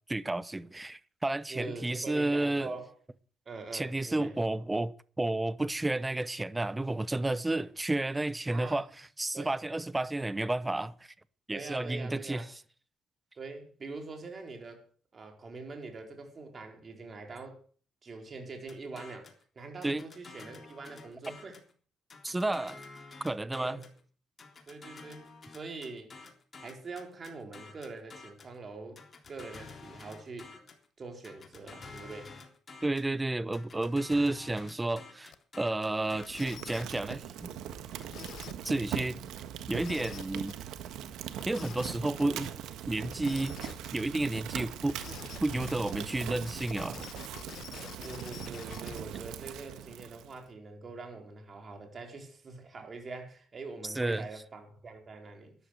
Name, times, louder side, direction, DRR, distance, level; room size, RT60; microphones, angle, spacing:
voice 1, 0.1-2.7 3.7-11.1 11.5-12.5 19.8-20.0 22.2-22.8 23.2-23.8 32.8-37.5 38.6-39.2 39.7-40.5 41.4-42.5 42.9-45.0 45.4-47.0 53.8-54.2, right 2 dB, 15° right, 0.8 m, -31 dB
voice 2, 1.5-2.9 3.4-4.3 8.5-8.8 9.3-9.5 11.5-12.5 13.4-14.8 15.1-17.6 18.0-19.3 19.5-21.6 23.5-23.9 24.7-26.1 26.6-29.0 29.3-30.5 31.0-32.3 48.0-55.6, right 3 dB, 40° right, 4.6 m, -44 dB
sound 1, 18.7-19.4 19.8-21.7 22.1-24.0 24.4-28.6 29.0-30.9 31.2-33.1 33.5-36.8, left 4 dB, 40° left, 3.5 m, -50 dB
sound 2, 35.3-35.4 36.2-37.1 38.0-38.8 39.7-40.5 41.4-42.2 43.1-44.0 44.9-49.0, left 9 dB, 65° left, 1.2 m, -46 dB
Fire, 36.0-50.4, right 10 dB, 85° right, 1.5 m, -41 dB
13.0 x 11.0 x 6.6 m
cardioid pair, 90°, 0 cm